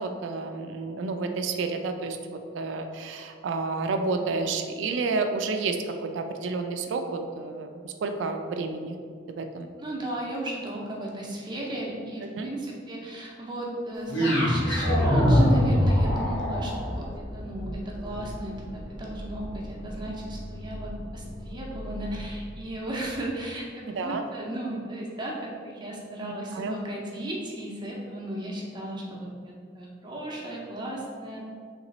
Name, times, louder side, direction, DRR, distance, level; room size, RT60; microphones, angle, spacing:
voice 1, 0.0-9.0 9.3-9.7 12.4-12.5 24.0-24.2 26.2-26.7, right 3 dB, 75° right, 6 dB, 0.3 m, -30 dB
voice 2, 9.8-31.4, right 1 dB, 25° right, -3 dB, 0.6 m, -35 dB
sound 1, 14.1-22.3, equal, 80° left, 1.2 m, -26 dB
3.2 x 3.0 x 4.1 m, 2.1 s
head